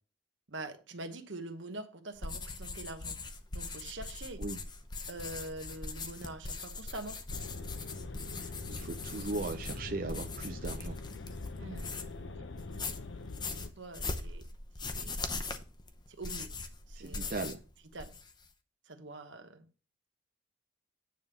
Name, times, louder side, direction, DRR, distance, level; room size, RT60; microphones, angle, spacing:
voice 1, 0.5-3.2 3.5-4.4 5.1-7.2 11.6-11.9 12.3-12.4 13.8-14.4 14.9-15.2 16.2-16.5 16.9-17.3 17.9-18.1 18.9-19.7, right 2 dB, 75° right, 1.1 m, -44 dB
sound 1, 2.2-12.2 12.6-17.7 17.9-18.5, left 3 dB, 25° left, 0.7 m, -41 dB
sound 2, 7.3-13.7, left 3 dB, 75° left, 0.7 m, -43 dB
voice 2, 8.4-11.0 16.9-17.6, right 2 dB, 50° right, 0.5 m, -38 dB
9.2 x 3.5 x 6.9 m
head